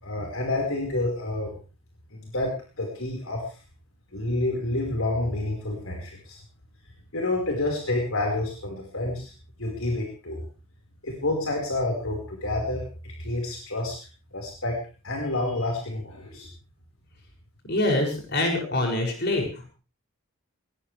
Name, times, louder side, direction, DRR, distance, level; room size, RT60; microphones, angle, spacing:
voice 1, 0.0-1.5 2.1-3.4 4.1-6.4 7.1-9.3 9.6-10.4 11.0-14.0 14.3-14.8 15.0-16.5, left 2 dB, 70° left, 0 dB, 5.2 m, -29 dB
voice 2, 17.7-19.7, left 1 dB, 50° left, 2 dB, 7.2 m, -25 dB
20.0 x 20.0 x 3.5 m, 0.36 s
head